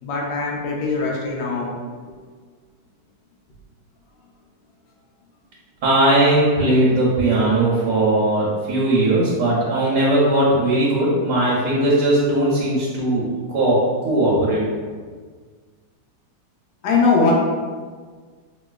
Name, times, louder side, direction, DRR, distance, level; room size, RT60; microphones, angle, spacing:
voice 1, 0.0-1.7 2.0-2.2 16.8-17.3, left 4 dB, 75° left, -2 dB, 1.3 m, -21 dB
voice 2, 5.8-14.6, right 1 dB, 70° right, -6 dB, 1.2 m, -18 dB
3.1 x 2.9 x 2.3 m, 1.5 s
omnidirectional pair, 2.0 m